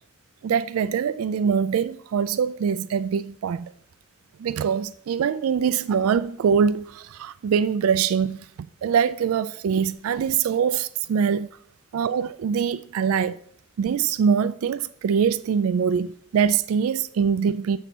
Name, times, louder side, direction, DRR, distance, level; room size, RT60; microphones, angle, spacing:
voice 1, 0.4-3.7 4.4-8.4 8.8-11.4 11.9-13.4 13.8-17.8, right 7 dB, 80° right, 0.3 m, -23 dB
7.2 x 6.9 x 6.1 m
head